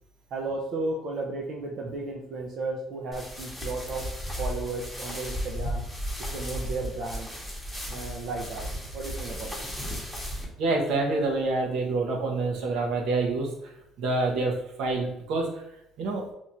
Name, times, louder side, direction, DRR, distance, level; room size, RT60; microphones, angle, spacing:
voice 1, 0.3-4.1 4.4-5.8 6.3-7.3 7.9-8.7 8.9-9.6, right 2 dB, 55° right, -1 dB, 0.5 m, -34 dB
sound 1, 3.1-10.5, equal, ahead, 1.0 m, -35 dB
voice 2, 10.6-13.7 14.0-15.6 16.0-16.3, right 3 dB, 75° right, 1 dB, 0.8 m, -27 dB
2.9 x 2.4 x 4.2 m, 0.81 s
cardioid pair, 120°, 0 cm